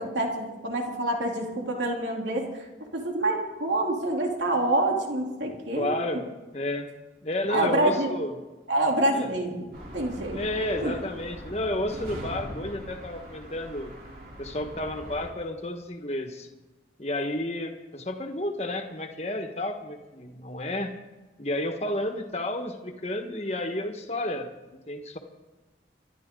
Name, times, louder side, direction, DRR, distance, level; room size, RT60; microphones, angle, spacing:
voice 1, 0.0-2.5 2.9-6.0 7.5-8.1 8.7-10.4 10.8-10.9, right 1 dB, 85° right, 0 dB, 3.2 m, -27 dB
voice 2, 5.8-6.2 6.5-6.9 7.2-8.3 9.1-9.3 10.3-13.9 14.4-16.5 17.0-20.9 21.4-24.5 24.9-25.2, left 1 dB, 35° left, 5 dB, 1.5 m, -31 dB
sound 1, 9.7-15.3, equal, 55° right, 3.7 m, -41 dB
24.5 x 12.0 x 3.9 m, 1.1 s
head